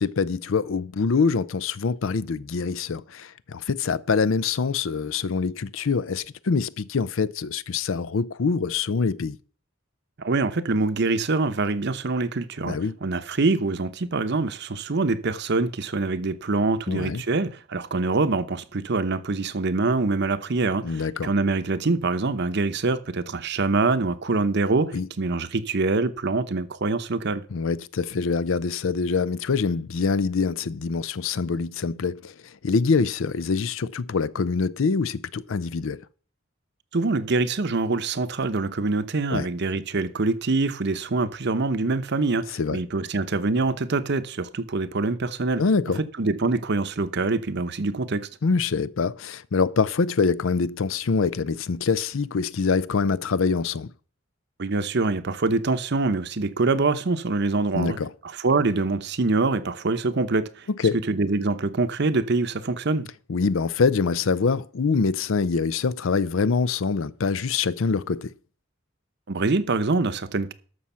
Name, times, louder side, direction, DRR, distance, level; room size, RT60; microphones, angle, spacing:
voice 1, 0.0-9.4 12.7-13.0 16.9-17.2 20.8-21.3 24.9-25.1 27.5-32.3 32.6-36.0 39.3-39.5 42.5-42.8 45.6-46.0 48.4-53.9 57.7-58.1 60.8-61.0 63.3-68.3, left 5 dB, 70° left, 0.5 m, -25 dB
voice 2, 10.2-27.4 36.9-45.6 46.2-48.3 54.6-58.0 58.2-60.6 61.1-63.1 69.3-70.5, right 3 dB, 55° right, 0.8 m, -25 dB
13.0 x 6.3 x 5.6 m
head